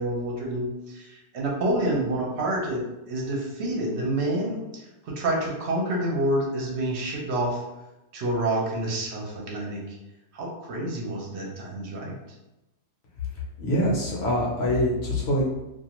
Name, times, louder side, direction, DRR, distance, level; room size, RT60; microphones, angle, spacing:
voice 1, 0.0-7.6 8.1-10.0 10.3-12.1, right 1 dB, 70° right, -2 dB, 0.9 m, -28 dB
voice 2, 13.6-15.4, equal, 60° left, -4 dB, 1.0 m, -24 dB
2.5 x 2.4 x 2.9 m, 0.97 s
omnidirectional pair, 1.2 m